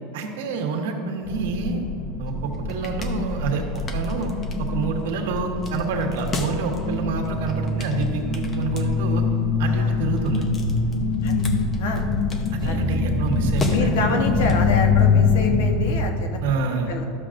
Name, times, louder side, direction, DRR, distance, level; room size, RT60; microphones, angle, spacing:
voice 1, 0.1-1.8 2.2-4.3 4.6-9.2 9.6-10.4 12.5-14.2 16.4-16.9, right 4 dB, 75° right, 2 dB, 1.2 m, -27 dB
sound 1, 1.3-16.1, left 4 dB, 20° left, 0.6 m, -24 dB
voice 2, 9.6-10.0 11.2-11.4 11.8-12.0 12.6-12.8 13.7-16.4 16.9-17.0, left 3 dB, 75° left, 4 dB, 1.0 m, -27 dB
12.0 x 6.5 x 2.5 m, 2.7 s
supercardioid pair, 155°, 0 cm